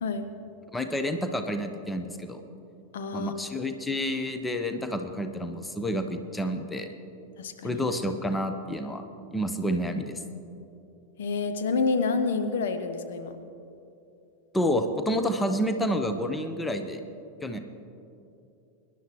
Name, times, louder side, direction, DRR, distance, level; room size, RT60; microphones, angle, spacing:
voice 1, 0.7-2.4 3.1-6.9 7.6-9.0 9.3-10.2 14.5-17.0 17.4-17.6, equal, 10° left, 7 dB, 0.9 m, -29 dB
voice 2, 2.9-3.3 7.4-7.8 11.2-13.4, left 4 dB, 60° left, 8 dB, 0.9 m, -28 dB
25.0 x 11.0 x 3.2 m, 2.7 s
figure-of-eight pair, 90°, 0 cm